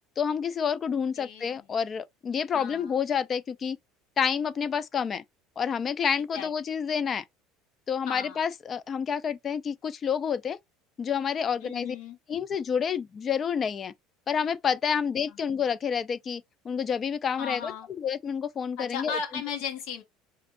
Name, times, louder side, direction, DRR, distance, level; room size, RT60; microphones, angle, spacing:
voice 1, 0.2-3.8 4.2-5.2 5.6-7.2 7.9-10.6 11.0-12.0 12.3-13.9 14.3-17.7 18.0-19.2, left 7 dB, 25° left, 0.3 m, -29 dB
voice 2, 1.2-1.6 2.5-3.0 6.3-6.5 8.1-8.4 11.6-12.2 15.3-15.4 17.4-17.9 18.8-20.0, left 6 dB, 70° left, 1.3 m, -36 dB
4.3 x 2.5 x 2.6 m
cardioid pair, 150°, 0 cm